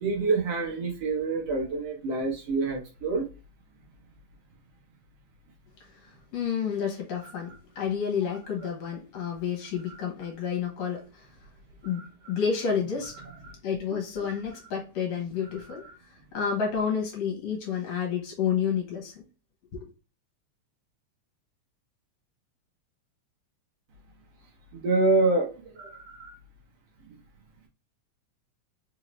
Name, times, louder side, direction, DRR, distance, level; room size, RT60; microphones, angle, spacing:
voice 1, 0.0-3.2 13.4-13.5 24.8-25.5 25.8-26.3, right 3 dB, 65° right, 1.9 m, -26 dB
voice 2, 6.0-11.3 11.8-13.1 13.6-15.8 16.3-19.2 19.7-19.9, left 7 dB, 65° left, 2.2 m, -30 dB
5.1 x 2.8 x 3.0 m
omnidirectional pair, 3.4 m